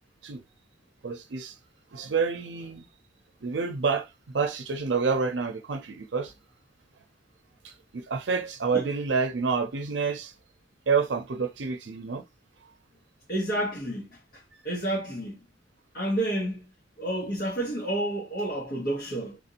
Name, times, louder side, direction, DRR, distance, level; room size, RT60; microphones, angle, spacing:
voice 1, 1.0-1.5 1.9-2.8 3.4-4.1 4.3-6.3 7.6-10.3 10.9-12.2, right 5 dB, 85° right, 0.6 m, -28 dB
voice 2, 13.3-15.4 15.9-16.6 17.0-19.4, right 1 dB, 60° left, 1.3 m, -30 dB
3.6 x 2.5 x 2.7 m
head